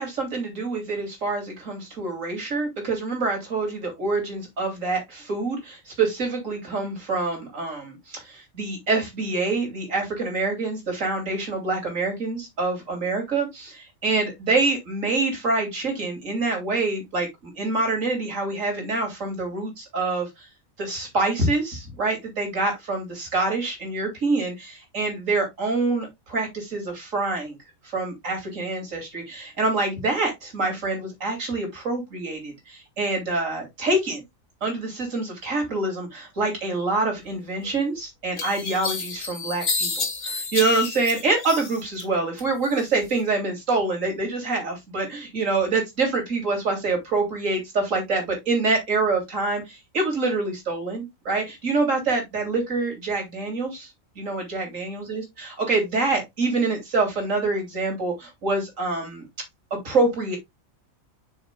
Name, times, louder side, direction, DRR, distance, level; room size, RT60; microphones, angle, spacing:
voice 1, 0.0-20.5 20.8-27.6 27.9-34.2 34.6-53.9 54.2-59.2 59.7-60.4, right 3 dB, 70° right, 3.0 m, -26 dB
sound 1, 37.6-37.7 38.4-42.0 42.4-43.1, left 4 dB, 55° left, 1.6 m, -29 dB
7.1 x 6.3 x 2.3 m
omnidirectional pair, 1.4 m